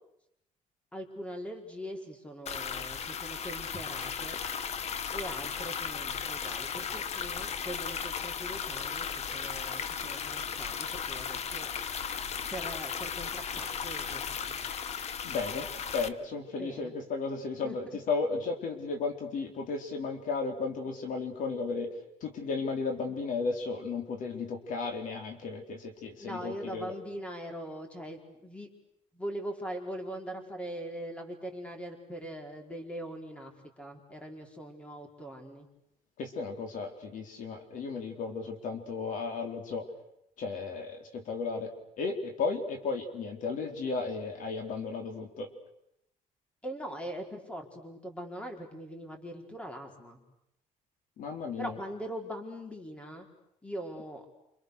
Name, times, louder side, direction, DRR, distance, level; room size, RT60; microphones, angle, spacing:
voice 1, 0.9-4.4 5.1-11.7 12.5-14.6 16.6-16.9 17.6-18.0 26.2-28.7 29.1-33.5 33.8-35.7 46.6-50.2 51.6-53.3 53.6-54.2, right 1 dB, 10° left, 3 dB, 4.6 m, -41 dB
sound 1, 2.5-16.1, left 7 dB, 50° left, 1.3 m, -36 dB
voice 2, 15.2-21.9 22.2-26.9 36.2-39.9 40.4-45.5 51.2-51.8, left 4 dB, 65° left, 5 dB, 4.0 m, -34 dB
30.0 x 26.5 x 6.8 m, 0.80 s
cardioid pair, 135°, 14 cm